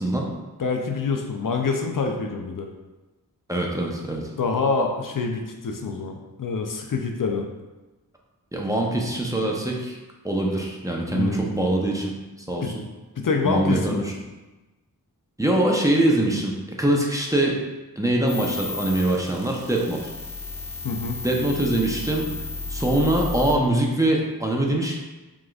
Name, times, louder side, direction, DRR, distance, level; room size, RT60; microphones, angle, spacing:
voice 1, 0.6-2.7 4.4-7.5 11.1-11.5 12.6-12.7 13.2-14.0 20.8-21.2, left 4 dB, 60° left, 3 dB, 0.5 m, -26 dB
voice 2, 3.5-4.2 8.5-10.0 10.2-12.2 12.5-12.8 13.4-14.1 15.4-17.6 18.0-20.1 21.2-22.3 22.7-25.0, right 1 dB, 10° right, -2 dB, 0.7 m, -23 dB
sound 1, 18.3-23.5, left 3 dB, 65° right, 1.1 m, -33 dB
4.8 x 3.6 x 2.4 m, 1.1 s
wide cardioid pair, 55°, 37 cm